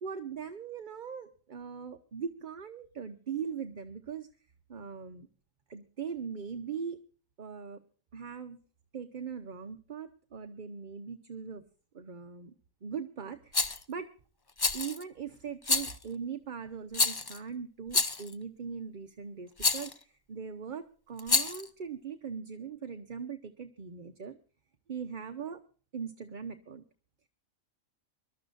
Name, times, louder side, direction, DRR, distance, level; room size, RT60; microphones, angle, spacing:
voice 1, 0.0-4.3 4.7-5.3 5.7-7.0 7.4-7.8 8.1-8.6 8.9-11.6 11.9-12.5 12.8-14.1 14.7-24.4 24.9-25.6 25.9-26.8, right 6 dB, 40° right, 6 dB, 0.9 m, -40 dB
Rattle, 13.5-13.8 14.6-15.0 15.6-16.0 16.9-17.4 17.9-18.3 19.6-19.9 21.2-21.7, left 4 dB, 30° left, 0.4 m, -28 dB
25.0 x 12.5 x 2.6 m, 0.40 s
omnidirectional pair, 1.4 m